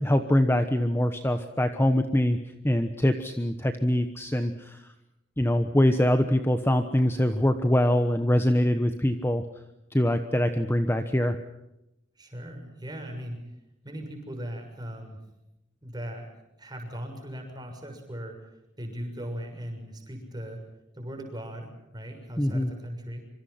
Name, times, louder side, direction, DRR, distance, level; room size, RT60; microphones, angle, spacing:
voice 1, 0.0-2.4 2.6-4.8 5.4-9.4 9.9-11.4 22.4-22.7, left 1 dB, 10° left, 7 dB, 1.2 m, -23 dB
voice 2, 12.2-13.6 13.8-15.2 15.8-16.3 16.6-20.6 20.9-23.3, equal, 20° right, 3 dB, 6.6 m, -38 dB
26.0 x 25.0 x 5.8 m, 0.90 s
head